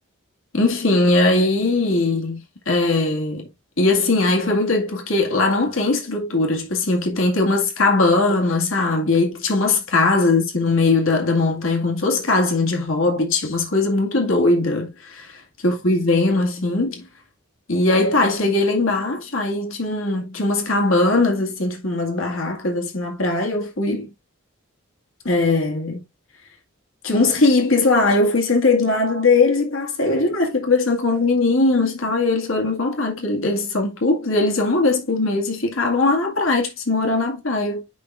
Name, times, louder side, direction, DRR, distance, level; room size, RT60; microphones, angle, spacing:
voice 1, 0.5-3.5 3.8-15.4 15.6-17.1 17.7-24.1 25.2-26.0 27.0-37.8, left 2 dB, 75° left, 2.0 m, -20 dB
10.5 x 3.9 x 2.5 m
head